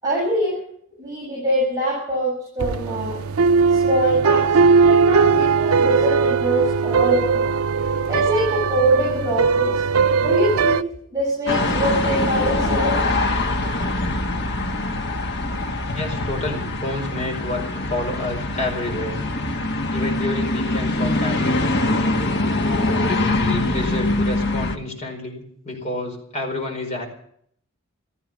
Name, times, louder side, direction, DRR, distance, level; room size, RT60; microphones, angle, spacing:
voice 1, 0.0-0.6 1.0-3.2 3.7-4.6 4.8-7.4 8.1-9.8 10.2-10.8 11.1-13.0, right 1 dB, 15° right, -6 dB, 7.5 m, -23 dB
sound 1, 2.6-10.8, right 5 dB, 85° right, 0.6 m, -19 dB
sound 2, 11.5-24.8, left 2 dB, 50° left, 1.6 m, -23 dB
voice 2, 15.9-19.2 19.9-21.8 23.1-27.1, left 2 dB, 35° left, 2 dB, 4.7 m, -29 dB
16.0 x 14.0 x 6.4 m, 0.66 s
head